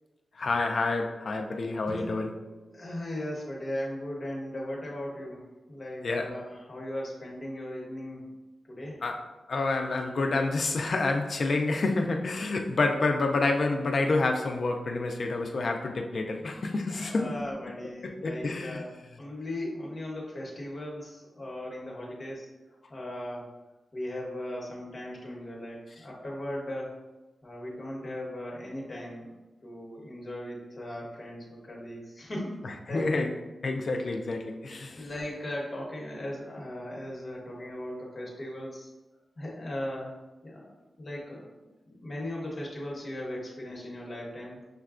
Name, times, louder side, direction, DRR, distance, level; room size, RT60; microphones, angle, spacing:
voice 1, 0.4-2.4 6.0-6.3 9.0-9.2 9.5-17.3 18.0-18.8 32.6-33.3 33.6-35.1, left 3 dB, 55° left, 4 dB, 0.3 m, -28 dB
Guitar, 1.8-4.4, right 2 dB, 20° right, 0.4 m, -47 dB
voice 2, 2.7-8.2 8.7-9.0 16.9-18.9 19.2-22.5 22.9-23.5 23.9-26.9 27.4-29.3 29.6-33.1 34.9-38.9 39.4-40.1 40.4-41.4 41.8-44.6, left 1 dB, 40° left, -3 dB, 1.0 m, -38 dB
6.4 x 2.2 x 2.4 m, 1.1 s
wide cardioid pair, 130°, 0 cm